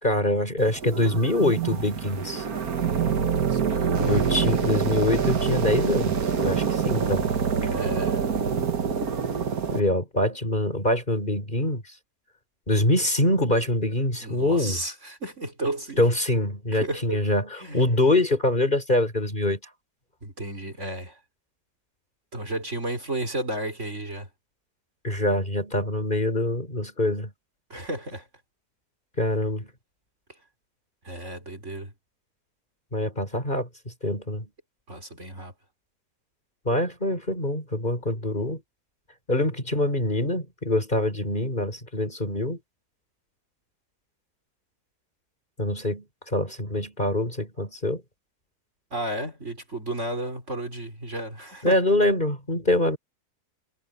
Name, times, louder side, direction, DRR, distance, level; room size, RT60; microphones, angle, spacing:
voice 1, 0.0-2.4 4.0-7.3 9.7-11.8 12.7-14.8 16.0-19.6 25.0-27.3 29.2-29.7 32.9-33.7 34.0-34.5 36.7-38.6 39.3-42.6 45.6-46.0 46.3-48.0 51.6-53.0, left 1 dB, 25° left, 5.0 m, -24 dB
sound 1, 0.6-9.8, right 6 dB, 60° right, 1.9 m, -26 dB
voice 2, 3.3-4.5 7.7-8.2 14.2-16.1 16.7-17.2 17.6-17.8 20.2-21.2 22.3-24.3 27.7-28.3 31.0-31.9 34.9-35.5 48.9-51.8, right 1 dB, 40° right, 4.8 m, -33 dB
omnidirectional pair, 1.8 m